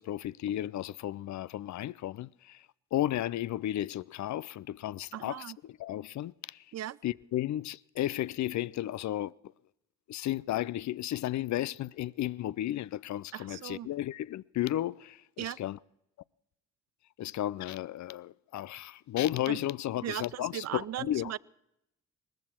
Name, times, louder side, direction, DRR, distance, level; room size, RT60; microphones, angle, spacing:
voice 1, 0.0-2.6 2.9-6.6 7.0-9.3 10.1-15.8 17.2-21.3, left 13 dB, 55° left, 0.4 m, -33 dB
voice 2, 5.1-5.6 6.7-7.0 13.3-13.9 15.4-15.6 19.5-19.6 20.0-21.4, right 12 dB, 50° right, 0.5 m, -37 dB
19.5 x 14.0 x 4.4 m
supercardioid pair, 45°, 34 cm